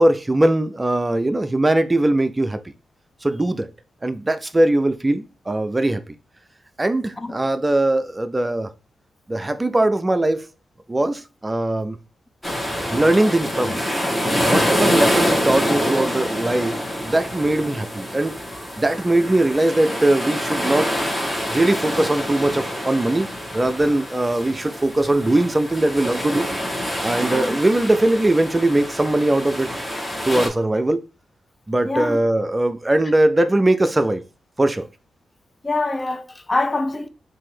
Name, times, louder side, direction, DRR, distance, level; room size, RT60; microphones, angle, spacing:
voice 1, 0.0-2.6 3.2-3.7 4.0-6.0 6.8-8.7 9.3-10.4 10.9-12.0 12.9-13.9 14.5-18.3 18.8-20.9 21.5-23.3 23.5-26.5 27.0-29.7 30.2-31.0 31.7-34.2 34.6-34.8, right 1 dB, 25° right, 0.4 m, -20 dB
sound 1, 12.4-30.5, equal, 15° left, 1.5 m, -26 dB
voice 2, 27.2-27.6 31.8-32.2 35.6-37.1, left 2 dB, 30° left, 0.6 m, -25 dB
3.6 x 2.7 x 4.3 m
supercardioid pair, 50°, 0 cm